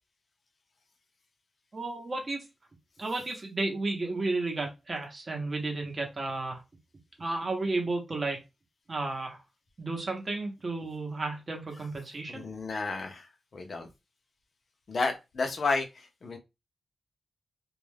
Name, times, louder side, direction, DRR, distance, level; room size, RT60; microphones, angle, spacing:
voice 1, 1.7-2.4 3.0-6.6 7.2-8.4 8.9-9.4 9.8-12.4, right 2 dB, 35° right, 1 dB, 0.7 m, -32 dB
voice 2, 12.3-13.3 13.5-13.9 14.9-16.4, left 3 dB, 50° left, 3 dB, 0.5 m, -31 dB
2.3 x 2.1 x 3.2 m, 0.24 s
wide cardioid pair, 135°, 0 cm